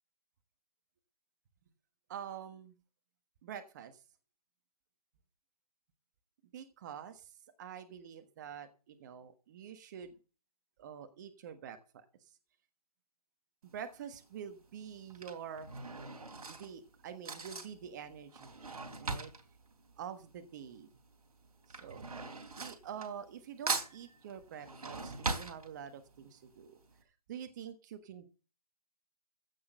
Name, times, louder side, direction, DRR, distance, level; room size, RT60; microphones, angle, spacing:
voice 1, 2.1-2.7 3.4-4.0 6.5-10.1 10.8-12.3 13.6-15.7 16.5-18.5 19.0-19.3 20.0-20.9 21.7-22.0 22.6-26.8 27.3-28.3, right 8 dB, 30° right, 9 dB, 1.4 m, -46 dB
Drawer open or close / Cutlery silverware, 13.7-14.0 14.9-20.8 21.0-23.4 23.7-26.2 26.6-26.7 26.9-27.0, right 3 dB, 70° right, 3.4 m, -40 dB
15.5 x 6.4 x 7.7 m, 0.35 s
hypercardioid pair, 160°, 20 cm